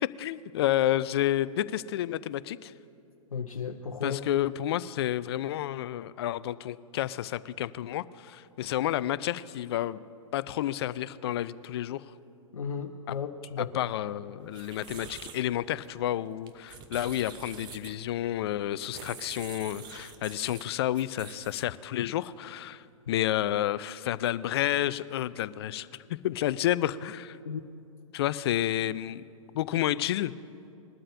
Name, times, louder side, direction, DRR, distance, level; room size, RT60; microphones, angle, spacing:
voice 1, 0.0-2.7 4.0-10.0 10.3-12.0 13.1-13.2 13.6-27.4 28.1-29.2 29.5-30.3, left 12 dB, 50° left, 17 dB, 0.4 m, -30 dB
voice 2, 3.3-4.2 12.5-13.7 27.5-27.6, left 6 dB, 75° left, 4 dB, 0.8 m, -34 dB
sound 1, 14.4-21.8, right 7 dB, 25° right, 0.9 m, -47 dB
21.0 x 12.5 x 2.7 m, 2.5 s
figure-of-eight pair, 110°, 18 cm